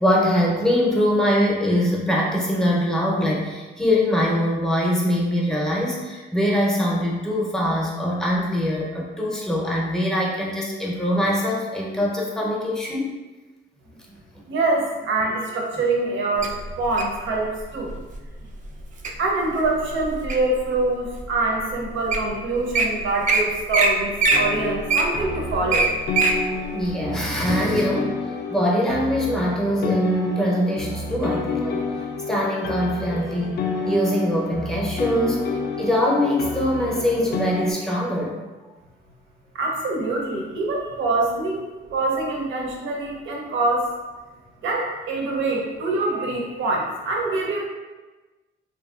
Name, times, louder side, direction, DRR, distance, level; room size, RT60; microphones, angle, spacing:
voice 1, 0.0-13.1 26.7-28.1 28.5-31.8 32.3-35.4 35.8-38.4, equal, ahead, -3 dB, 0.6 m, -23 dB
voice 2, 14.5-17.9 19.2-25.9 39.5-43.9 44.6-47.7, right 2 dB, 75° right, -1 dB, 0.7 m, -25 dB
Wild animals, 16.4-17.2 17.9-18.2 18.6-19.1 19.6-20.6 21.1-21.2 21.8-21.9 22.1-22.3 22.5-22.8 23.3-23.4 23.7-23.9 24.2-26.4 26.8-26.9, right 4 dB, 40° right, 0.4 m, -21 dB
sound 1, 24.3-37.7, left 3 dB, 55° left, 0.4 m, -29 dB
2.8 x 2.6 x 2.4 m, 1.2 s
cardioid pair, 90°, 20 cm